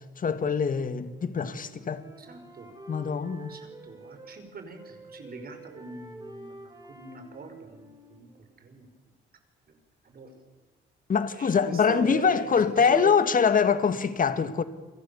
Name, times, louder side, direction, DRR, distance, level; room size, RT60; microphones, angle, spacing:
voice 1, 0.2-2.0 2.9-3.5 11.1-14.6, left 6 dB, 45° left, 1.9 m, -24 dB
Wind instrument woodwind instrument, 0.9-4.4 4.7-8.8, right 2 dB, 20° right, 7.6 m, -48 dB
voice 2, 2.2-2.7 3.5-8.3 8.6-8.9 10.0-10.4 11.3-13.2, right 4 dB, 50° right, 5.4 m, -41 dB
29.5 x 23.0 x 7.1 m
cardioid pair, 90°, 20 cm